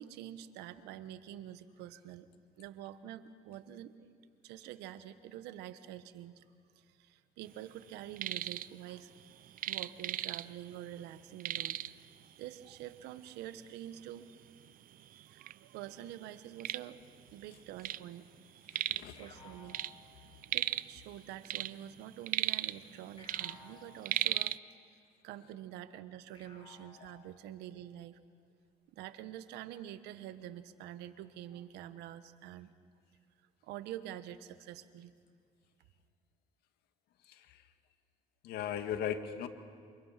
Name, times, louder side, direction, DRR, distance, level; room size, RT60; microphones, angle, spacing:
voice 1, 0.0-2.3 2.6-4.1 4.4-6.4 6.8-9.1 9.7-11.8 12.4-14.3 15.3-17.0 17.3-18.3 19.2-19.8 20.2-20.3 20.5-24.6 25.2-28.2 28.9-32.7 33.6-35.1, right 12 dB, 80° right, 12 dB, 1.3 m, -47 dB
sound 1, 7.9-8.7 9.0-10.7 11.0-11.1 11.4-12.1 12.8-12.9 13.5-13.6 14.3-14.4 14.7-15.5 16.0-18.1 18.3-19.2 19.4-21.0 21.3-23.0 23.2-24.6, right 13 dB, 55° right, 0.6 m, -36 dB
voice 2, 18.7-19.2 37.3-37.6 38.4-39.5, left 9 dB, 70° left, 7 dB, 2.0 m, -38 dB
sound 2, 19.2-20.8 23.2-24.8 26.3-27.8, left 4 dB, 35° left, 6.3 m, -58 dB
28.5 x 26.5 x 5.9 m, 2.1 s
supercardioid pair, 80°, 17 cm